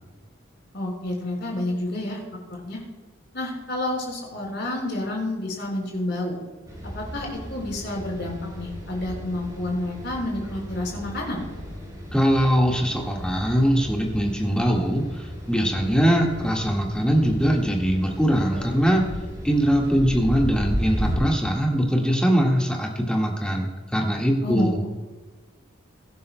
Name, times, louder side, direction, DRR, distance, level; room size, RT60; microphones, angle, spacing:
voice 1, 0.7-2.2 2.5-2.8 3.3-6.4 6.9-11.5 24.4-24.8, left 1 dB, 55° left, -1 dB, 4.6 m, -29 dB
sound 1, 6.7-21.2, equal, 20° right, 3.7 m, -34 dB
voice 2, 12.1-19.1 19.4-24.8, equal, 5° left, -1 dB, 1.6 m, -22 dB
23.0 x 11.0 x 2.2 m, 1.3 s
head